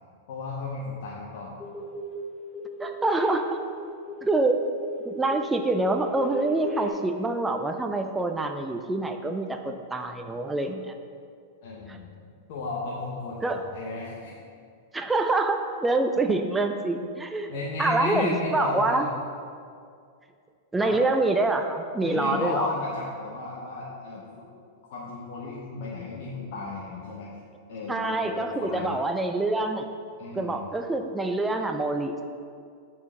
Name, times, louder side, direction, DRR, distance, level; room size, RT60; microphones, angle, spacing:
voice 1, 0.3-1.6 11.6-12.1 12.5-14.3 16.2-16.4 16.9-17.1 17.5-19.1 20.8-20.9 22.0-24.4 24.9-27.3 27.7-29.0 30.2-30.7, left 3 dB, 60° left, -5 dB, 1.1 m, -34 dB
sound 1, 1.6-2.2 2.5-6.9, equal, 5° left, 0.9 m, -37 dB
voice 2, 2.8-3.6 4.2-4.6 5.0-10.9 11.9-12.0 13.4-13.6 14.9-17.5 17.8-19.1 20.7-22.7 27.9-29.9 30.3-32.2, right 2 dB, 10° right, 5 dB, 0.4 m, -26 dB
8.5 x 4.5 x 3.7 m, 2.3 s
hypercardioid pair, 125°, 0 cm